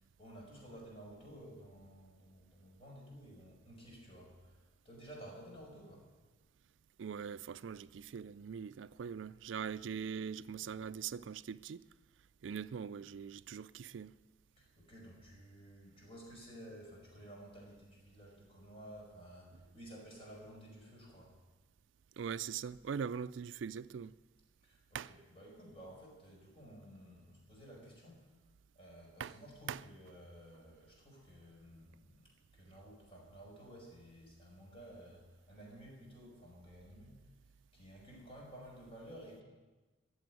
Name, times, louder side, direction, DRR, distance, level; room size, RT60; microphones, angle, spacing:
voice 1, 0.2-6.1 14.6-21.4 24.6-28.2 28.7-37.2 37.7-39.4, equal, 30° left, 5.3 m, -54 dB
voice 2, 7.0-11.8 12.4-14.1 22.2-24.2 24.9-25.1 29.2-29.4 29.7-29.8, right 7 dB, 75° right, 0.4 m, -42 dB
14.0 x 7.8 x 9.4 m
head